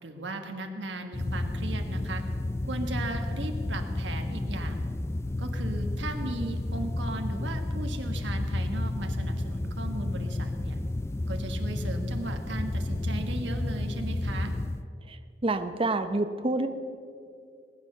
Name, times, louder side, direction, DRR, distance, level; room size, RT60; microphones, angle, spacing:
voice 1, 0.0-2.2 2.6-4.9 5.4-10.8 11.3-14.5, right 2 dB, 85° right, 5 dB, 1.7 m, -37 dB
sound 1, 1.1-14.8, left 1 dB, 15° left, 0.3 m, -31 dB
voice 2, 15.4-16.7, right 2 dB, 30° right, 9 dB, 0.7 m, -27 dB
19.5 x 9.7 x 6.8 m, 2.4 s
head